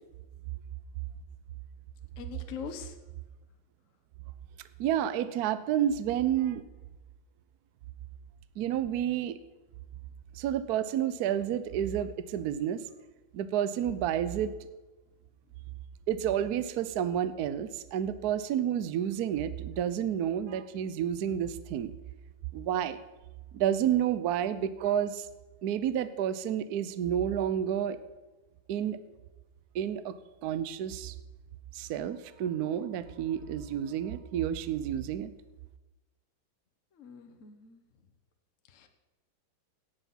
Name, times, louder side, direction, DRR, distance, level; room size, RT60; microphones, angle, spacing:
voice 1, 2.2-2.9 37.0-37.8 38.7-38.9, left 7 dB, 45° left, 6 dB, 1.2 m, -42 dB
voice 2, 4.8-6.6 8.6-9.4 10.3-12.8 13.3-14.5 16.1-21.9 22.5-23.0 23.5-25.3 25.6-28.0 28.7-29.0 29.7-30.1 30.4-31.1 31.7-35.3, right 10 dB, 70° right, 13 dB, 0.9 m, -30 dB
17.0 x 7.0 x 5.7 m, 1.1 s
omnidirectional pair, 2.3 m